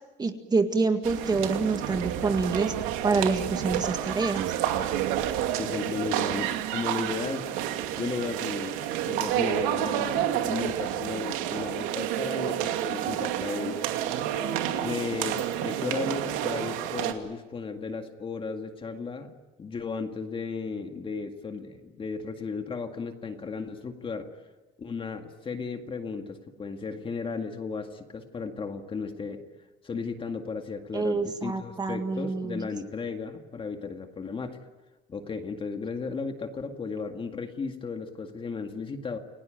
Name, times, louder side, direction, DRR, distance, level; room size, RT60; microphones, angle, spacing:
voice 1, 0.2-2.7 3.0-4.5 30.9-32.7, right 4 dB, 20° right, 6 dB, 1.9 m, -27 dB
sound 1, 1.0-17.1, right 11 dB, 85° right, 2.5 m, -29 dB
voice 2, 5.6-8.8 9.1-13.8 14.8-19.3 19.6-24.3 24.8-29.4 29.8-34.6 35.1-39.2, left 5 dB, 25° left, 5 dB, 2.0 m, -35 dB
29.5 x 18.0 x 9.3 m, 1.2 s
cardioid pair, 140°, 21 cm